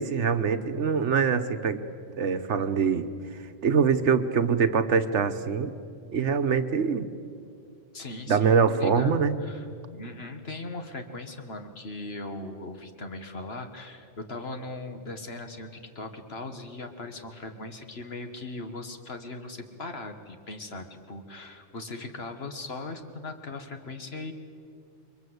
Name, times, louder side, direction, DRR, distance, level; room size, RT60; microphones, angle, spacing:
voice 1, 0.0-1.8 2.2-3.1 3.6-5.7 6.1-7.1 8.3-9.3, right 6 dB, 75° right, 9 dB, 1.4 m, -24 dB
voice 2, 7.9-24.3, left 2 dB, 60° left, 6 dB, 1.9 m, -39 dB
28.5 x 23.0 x 8.1 m, 2.4 s
omnidirectional pair, 1.2 m